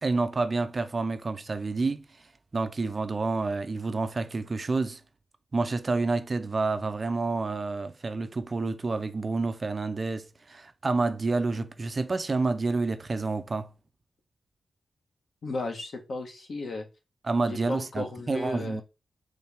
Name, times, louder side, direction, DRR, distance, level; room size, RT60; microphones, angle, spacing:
voice 1, 0.0-2.0 2.5-5.0 5.5-13.7 17.2-18.8, right 3 dB, 30° right, 0.4 m, -29 dB
voice 2, 15.4-16.8 17.5-18.8, left 2 dB, 55° left, 1.1 m, -34 dB
4.3 x 3.2 x 3.4 m
wide cardioid pair, 165°, 0 cm